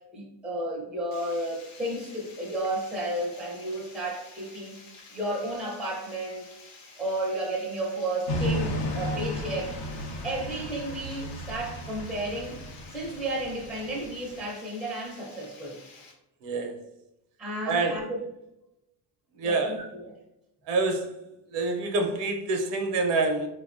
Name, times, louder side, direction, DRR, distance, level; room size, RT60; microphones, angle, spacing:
voice 1, 0.1-4.8 5.1-6.5 7.0-9.8 10.2-12.6 12.9-15.8 17.4-18.2 19.4-20.1, right 1 dB, ahead, -3 dB, 0.4 m, -32 dB
Water, 1.1-16.1, left 3 dB, 90° left, 1.0 m, -51 dB
sound 1, 8.3-14.4, left 1 dB, 65° left, 0.7 m, -34 dB
voice 2, 16.4-16.8 17.7-18.0 19.4-19.8 20.7-21.2 21.5-23.5, right 3 dB, 65° right, 4 dB, 0.6 m, -26 dB
4.5 x 2.2 x 2.4 m, 0.88 s
cardioid pair, 165°, 46 cm